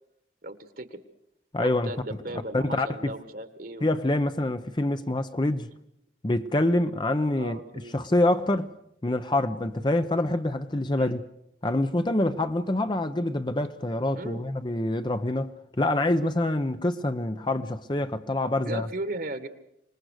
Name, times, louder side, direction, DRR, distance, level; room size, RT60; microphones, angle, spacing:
voice 1, 0.4-1.0 1.6-3.8 7.3-8.0 11.0-11.2 14.1-14.4 18.6-19.5, right 1 dB, 50° right, 1.6 m, -36 dB
voice 2, 1.5-1.9 2.5-3.1 3.8-5.7 6.2-7.6 7.9-8.7 9.0-11.2 11.6-18.9, left 1 dB, 25° left, 0.7 m, -26 dB
26.0 x 20.5 x 6.5 m
head